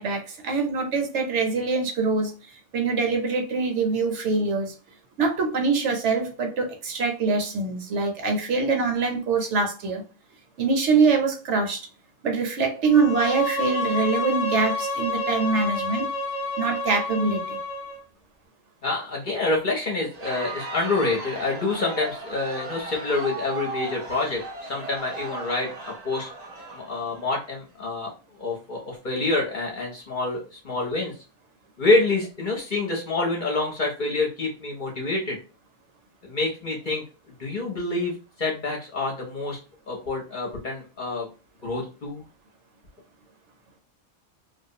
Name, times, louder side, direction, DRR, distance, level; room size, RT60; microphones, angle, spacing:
voice 1, 0.0-4.7 5.2-10.0 10.6-11.9 12.2-16.1 16.6-17.6, right 4 dB, 70° right, 4 dB, 0.9 m, -24 dB
Bowed string instrument, 12.8-18.0, left 2 dB, ahead, 0.7 m, -29 dB
voice 2, 18.8-26.3 26.7-28.1 28.4-31.1 31.8-35.4 36.2-37.0 37.4-39.6 39.9-41.3 41.6-42.2, left 3 dB, 45° left, -1 dB, 0.7 m, -27 dB
Crowd, 20.0-27.5, right 2 dB, 50° right, 0.5 m, -36 dB
2.4 x 2.1 x 2.6 m, 0.34 s
omnidirectional pair, 1.3 m